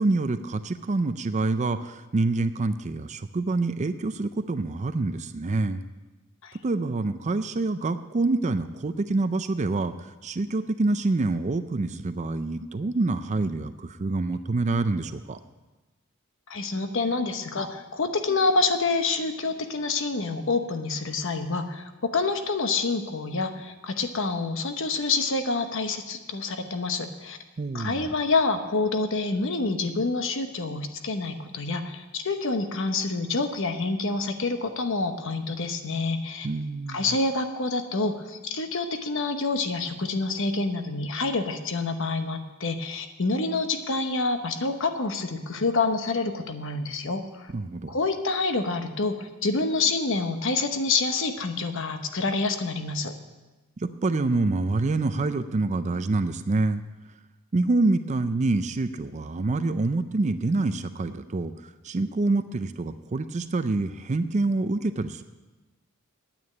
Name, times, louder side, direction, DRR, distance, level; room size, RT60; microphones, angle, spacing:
voice 1, 0.0-5.8 6.6-9.9 10.2-15.4 27.6-28.1 36.4-37.0 47.5-47.9 53.8-56.8 57.5-61.5 61.8-65.2, right 2 dB, 35° right, 10 dB, 0.4 m, -26 dB
voice 2, 16.5-27.4 27.7-36.5 36.9-47.5 47.9-53.1, left 3 dB, 65° left, 7 dB, 1.0 m, -27 dB
9.4 x 9.0 x 8.5 m, 1.2 s
head